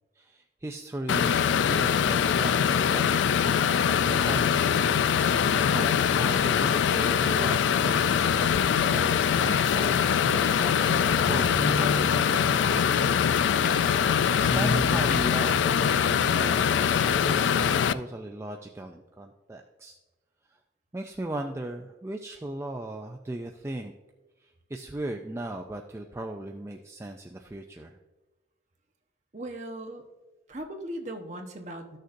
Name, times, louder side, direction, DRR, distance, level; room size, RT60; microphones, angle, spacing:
voice 1, 0.2-4.8 5.1-19.9 20.5-20.6 20.9-23.9 24.4-28.0, right 1 dB, 15° right, 3 dB, 0.3 m, -38 dB
sound 1, 1.1-17.9, left 7 dB, 80° left, 0.3 m, -23 dB
sound 2, 8.5-15.2, left 2 dB, 45° left, 0.6 m, -35 dB
voice 2, 29.3-30.1 30.5-32.0, right 1 dB, 40° right, 3 dB, 1.0 m, -38 dB
14.0 x 6.5 x 2.6 m, 1.1 s
head